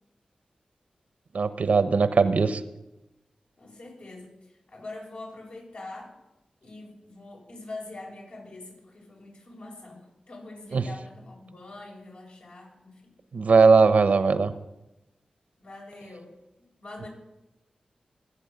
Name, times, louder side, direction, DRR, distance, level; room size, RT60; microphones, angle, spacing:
voice 1, 1.3-2.6 10.7-10.9 13.3-14.5, right 4 dB, 75° right, 12 dB, 1.0 m, -19 dB
voice 2, 3.6-6.1 6.6-13.0 15.6-16.3 16.8-17.1, left 2 dB, 75° left, -2 dB, 6.3 m, -43 dB
22.0 x 8.5 x 6.8 m, 0.96 s
cardioid pair, 45°, 2 cm